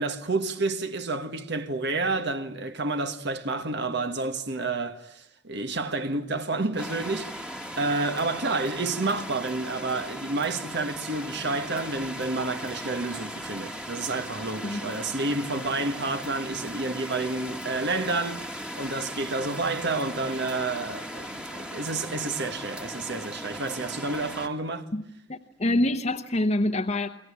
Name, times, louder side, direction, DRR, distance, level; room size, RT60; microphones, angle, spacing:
voice 1, 0.0-18.4 18.7-24.9, right 3 dB, 55° right, 1.4 m, -30 dB
sound 1, 6.8-24.5, equal, 5° right, 1.7 m, -38 dB
voice 2, 25.3-27.1, left 1 dB, 35° left, 1.0 m, -26 dB
29.5 x 22.0 x 8.5 m
head